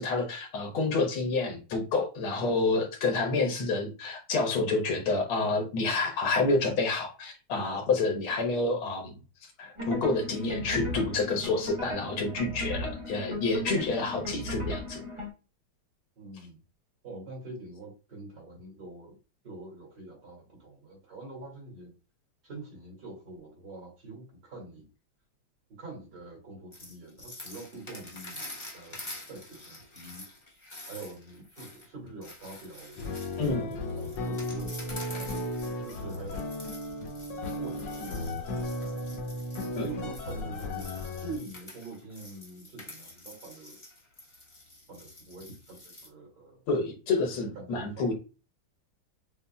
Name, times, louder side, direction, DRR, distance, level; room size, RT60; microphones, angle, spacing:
voice 1, 0.0-9.2 9.6-15.0 33.4-33.8 39.8-39.9 46.7-48.1, left 3 dB, 85° left, 3 dB, 2.0 m, -28 dB
sound 1, 9.8-15.3, left 1 dB, 35° right, 0.4 m, -36 dB
voice 2, 16.2-16.6 17.0-19.1 19.4-21.9 22.4-24.8 25.8-30.2 30.9-33.0 33.9-35.3 35.8-36.6 37.6-39.0 39.6-43.8 44.9-46.6 47.5-48.1, right 2 dB, 55° right, -2 dB, 2.8 m, -45 dB
sound 2, 26.7-46.1, left 1 dB, 30° left, 0.6 m, -47 dB
sound 3, 33.0-41.4, left 1 dB, 70° left, 1.3 m, -35 dB
6.7 x 2.3 x 2.2 m, 0.32 s
omnidirectional pair, 2.3 m